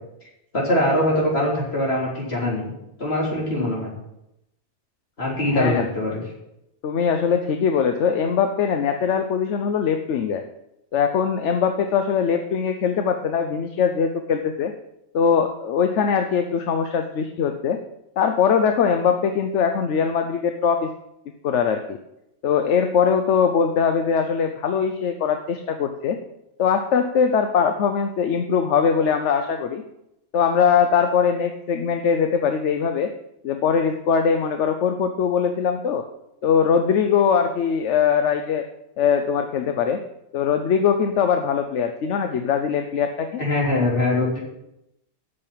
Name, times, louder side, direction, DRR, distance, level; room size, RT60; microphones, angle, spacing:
voice 1, 0.5-2.7 3.0-3.9 5.2-6.2 43.4-44.4, left 1 dB, 60° left, -4 dB, 3.7 m, -22 dB
voice 2, 5.5-5.9 6.8-10.4 10.9-14.7 15.1-17.8 18.2-20.9 21.4-22.0 22.4-26.2 26.6-29.8 30.3-33.1 33.4-36.0 36.4-38.6 39.0-40.0 40.3-43.4, left 7 dB, 85° left, 7 dB, 1.1 m, -21 dB
8.7 x 6.7 x 8.6 m, 0.86 s
omnidirectional pair, 1.2 m